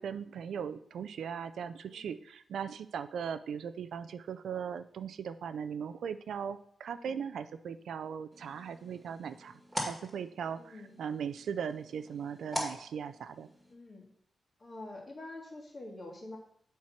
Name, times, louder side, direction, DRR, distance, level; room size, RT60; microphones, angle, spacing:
voice 1, 0.0-13.5, right 7 dB, 85° right, 12 dB, 0.4 m, -39 dB
voice 2, 6.9-7.2 10.6-11.0 13.7-14.1 14.6-16.4, left 2 dB, 35° left, 0 dB, 2.1 m, -46 dB
sound 1, 8.3-13.7, equal, 10° right, 2.2 m, -43 dB
7.4 x 4.6 x 5.8 m, 0.64 s
cardioid pair, 105°, 0 cm